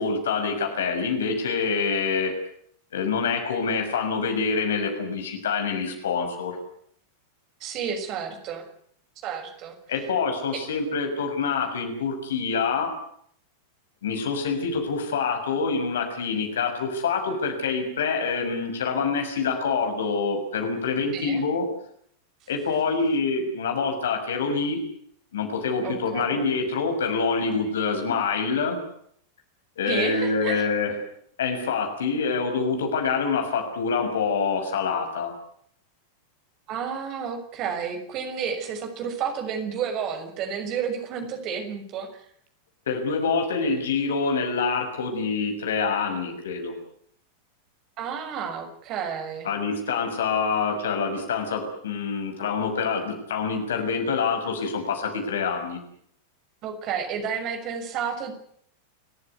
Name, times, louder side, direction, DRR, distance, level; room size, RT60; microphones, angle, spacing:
voice 1, 0.0-2.3 2.9-6.6 9.9-12.9 14.0-21.7 22.5-24.8 25.3-28.8 29.8-30.9 31.4-35.3 42.9-46.7 49.4-55.8, left 5 dB, 65° left, 5 dB, 6.4 m, -26 dB
voice 2, 7.6-8.7 9.2-9.7 10.5-10.6 21.1-21.4 25.8-26.4 29.9-30.7 36.7-42.2 48.0-49.5 56.6-58.3, right 7 dB, 40° right, 6 dB, 6.4 m, -31 dB
29.5 x 15.0 x 9.6 m, 0.66 s
figure-of-eight pair, 90°, 0 cm